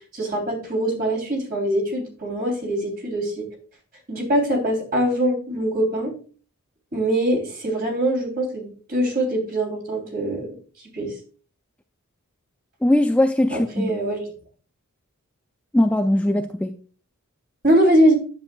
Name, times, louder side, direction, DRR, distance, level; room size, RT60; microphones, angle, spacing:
voice 1, 0.1-3.4 4.1-6.1 6.9-10.5 10.9-11.1 13.5-14.2 17.6-18.1, right 1 dB, 40° right, 3.0 m, -22 dB
voice 2, 12.8-13.9 15.7-16.8, left 1 dB, 5° left, 0.3 m, -20 dB
10.0 x 7.5 x 2.2 m
head